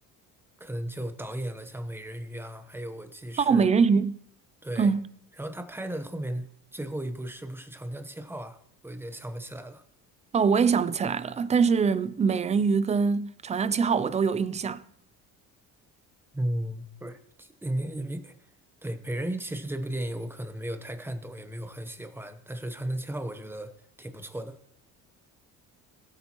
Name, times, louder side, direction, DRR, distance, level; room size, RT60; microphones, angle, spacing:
voice 1, 0.6-3.7 4.6-4.9 5.4-6.5 6.7-8.6 8.8-9.8 16.3-18.3 18.8-23.7 24.0-24.6, right 1 dB, 5° right, 0.9 m, -35 dB
voice 2, 3.4-4.2 4.8-5.0 10.3-14.8, right 5 dB, 20° right, 0.3 m, -23 dB
18.0 x 8.5 x 3.0 m
cardioid pair, 125°, 33 cm